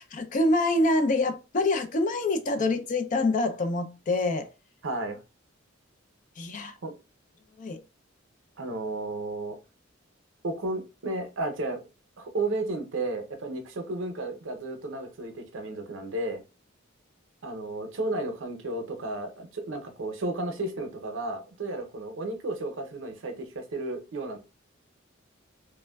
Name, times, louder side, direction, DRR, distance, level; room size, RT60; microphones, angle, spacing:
voice 1, 0.0-4.5 6.4-6.8 7.6-7.8, left 2 dB, 40° left, 0.4 m, -26 dB
voice 2, 4.8-5.2 6.8-6.9 8.6-9.6 10.4-11.8 12.2-16.4 17.4-24.4, right 2 dB, 70° right, 0.6 m, -33 dB
3.2 x 2.1 x 2.2 m
head